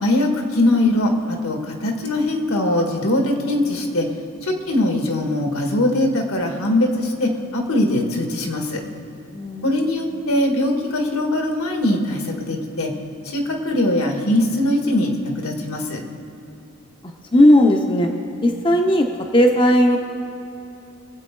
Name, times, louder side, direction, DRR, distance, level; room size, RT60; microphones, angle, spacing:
voice 1, 0.0-4.1 4.4-8.8 9.6-12.9 13.2-16.0, left 1 dB, 75° left, 2 dB, 1.8 m, -21 dB
voice 2, 9.3-9.8 17.3-18.1 18.4-19.1 19.3-20.0, left 1 dB, 20° left, 2 dB, 0.7 m, -15 dB
23.5 x 8.2 x 3.8 m, 3.0 s
head